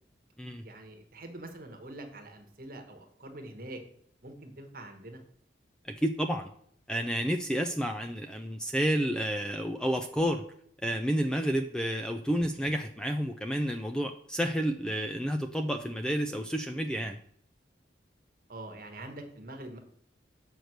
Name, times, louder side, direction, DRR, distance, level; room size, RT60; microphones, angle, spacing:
voice 1, 0.6-3.8 4.2-5.2 18.5-19.8, right 1 dB, 50° right, 4 dB, 1.2 m, -44 dB
voice 2, 6.0-6.5 6.9-10.5 10.8-17.2, equal, 5° left, 6 dB, 0.3 m, -30 dB
6.5 x 4.6 x 6.5 m, 0.64 s
head